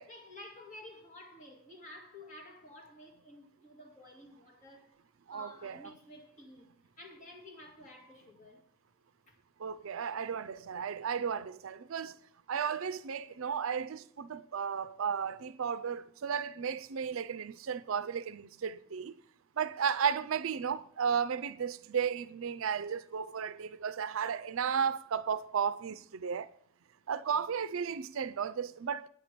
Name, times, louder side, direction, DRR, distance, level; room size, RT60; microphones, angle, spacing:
voice 1, 0.1-4.9 5.3-6.7 7.0-8.6 9.3-9.4, left 1 dB, 35° left, 2.3 m, -52 dB
voice 2, 5.3-5.9 9.6-12.2 12.5-19.2 19.6-26.5 27.1-29.1, right 7 dB, 65° right, 0.5 m, -34 dB
9.0 x 8.6 x 5.1 m
head